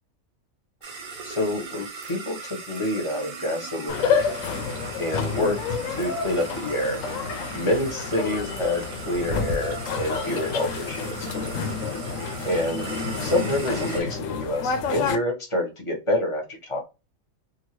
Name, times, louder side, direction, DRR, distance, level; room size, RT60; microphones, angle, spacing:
sound 1, 0.8-14.0, right 5 dB, 90° right, 1.2 m, -39 dB
voice 1, 1.2-4.2 5.0-7.0 7.5-11.3 12.4-12.8 13.2-16.8, left 1 dB, 25° left, 1 dB, 0.9 m, -27 dB
sound 2, 3.9-15.2, left 5 dB, 75° left, 1.0 m, -29 dB
2.7 x 2.6 x 2.9 m, 0.26 s
omnidirectional pair, 1.4 m